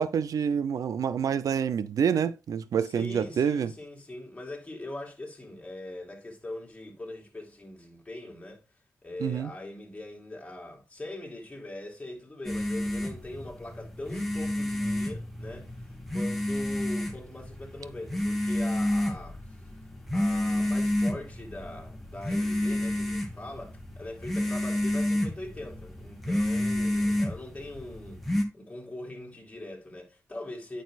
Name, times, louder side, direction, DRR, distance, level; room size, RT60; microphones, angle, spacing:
voice 1, 0.0-3.7 9.2-9.5, right 7 dB, 85° right, 0.5 m, -27 dB
voice 2, 2.8-8.6 9.0-15.8 16.1-19.4 20.1-28.2 28.5-30.8, left 1 dB, 20° left, 3.3 m, -41 dB
sound 1, 12.4-28.4, left 1 dB, ahead, 2.3 m, -30 dB
9.2 x 6.5 x 2.5 m
cardioid pair, 70°, 6 cm